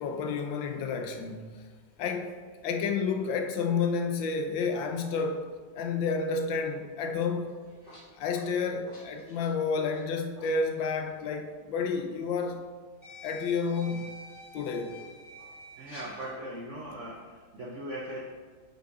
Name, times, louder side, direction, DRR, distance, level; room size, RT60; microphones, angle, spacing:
voice 1, 0.0-1.5 2.0-2.4 2.6-5.5 5.8-7.5 8.2-12.6 13.2-14.1 14.5-15.0, left 5 dB, 85° left, 5 dB, 1.5 m, -30 dB
sound 1, 7.5-10.5 10.8-11.0 12.1-12.2 13.0-16.3, left 2 dB, 30° left, 2.1 m, -49 dB
voice 2, 15.8-18.2, right 1 dB, 55° right, -3 dB, 0.9 m, -39 dB
6.4 x 5.4 x 4.7 m, 1.5 s
omnidirectional pair, 2.0 m